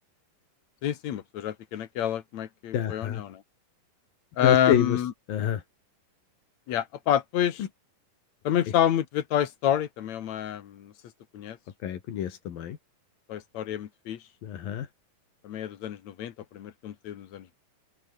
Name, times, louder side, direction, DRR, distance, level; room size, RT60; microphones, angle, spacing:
voice 1, 0.8-3.4 4.4-5.1 6.7-7.6 8.4-10.9 11.3-11.6 13.3-14.2 15.4-17.6, left 10 dB, 60° left, 2.5 m, -28 dB
voice 2, 2.7-3.2 4.4-5.0 5.3-5.6 11.8-12.8 14.4-14.9, left 10 dB, 85° left, 3.9 m, -27 dB
omnidirectional pair, 4.0 m